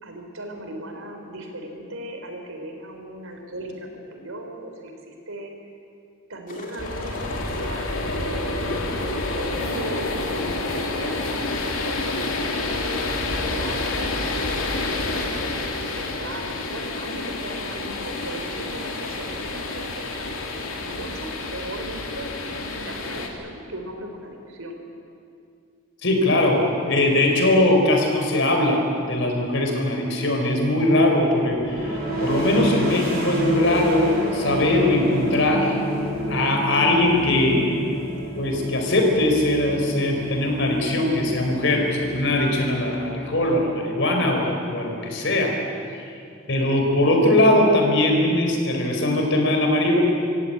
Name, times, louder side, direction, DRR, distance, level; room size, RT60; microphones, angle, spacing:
voice 1, 0.0-5.5 6.3-15.2 16.0-20.3 20.8-24.8, right 1 dB, 85° right, 3 dB, 4.0 m, -37 dB
sound 1, 6.5-11.6, left 2 dB, 40° left, 3.0 m, -41 dB
sound 2, 6.8-23.3, left 2 dB, 85° left, 2.7 m, -28 dB
voice 2, 26.0-28.8 29.1-35.8 36.3-37.7 38.4-45.6 45.9-46.1 46.5-50.0, left 1 dB, 60° left, 2 dB, 4.4 m, -21 dB
sound 3, 31.5-43.1, equal, 45° right, 7.2 m, -29 dB
25.5 x 16.0 x 8.7 m, 2.4 s
head